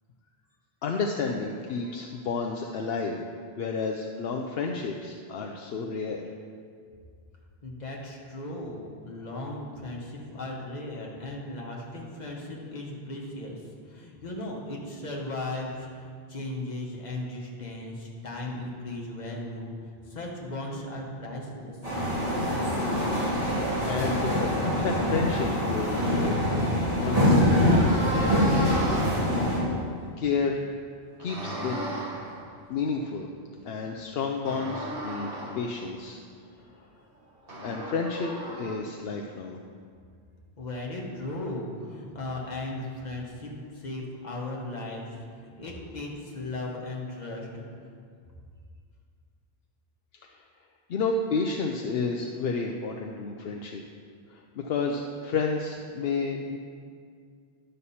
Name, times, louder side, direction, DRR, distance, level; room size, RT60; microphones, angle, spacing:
voice 1, 0.8-3.2 3.6-6.3 23.5-26.4 27.0-28.9 30.2-30.6 31.2-31.8 32.7-33.3 33.7-36.2 37.6-38.3 38.6-39.6 50.2-50.4 50.9-53.8 54.3-56.6, left 4 dB, 70° left, 2 dB, 0.8 m, -31 dB
voice 2, 7.6-19.7 20.0-21.8 40.6-47.7, left 2 dB, 45° left, -2 dB, 1.4 m, -37 dB
suburban train, 21.8-29.6, left 1 dB, 35° right, 2.5 m, -24 dB
sound 1, 27.1-29.7 31.1-32.6 34.5-35.8 37.5-38.8, equal, 60° right, 1.7 m, -34 dB
11.0 x 6.6 x 4.2 m, 2.1 s
omnidirectional pair, 1.0 m